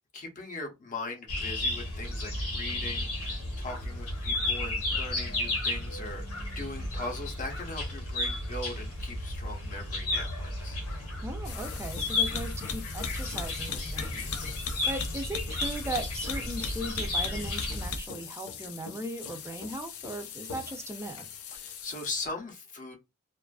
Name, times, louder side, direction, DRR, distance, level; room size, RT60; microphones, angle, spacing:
voice 1, 0.1-6.3 6.6-10.8 14.0-14.3 21.5-23.0, left 2 dB, 35° left, 0.7 m, -40 dB
sound 1, 1.3-17.9, left 2 dB, 85° left, 1.0 m, -33 dB
voice 2, 11.2-14.3 14.9-21.2, right 1 dB, 10° right, 0.4 m, -38 dB
sound 2, 11.4-22.3, left 6 dB, 70° left, 0.4 m, -39 dB
2.4 x 2.4 x 2.3 m
head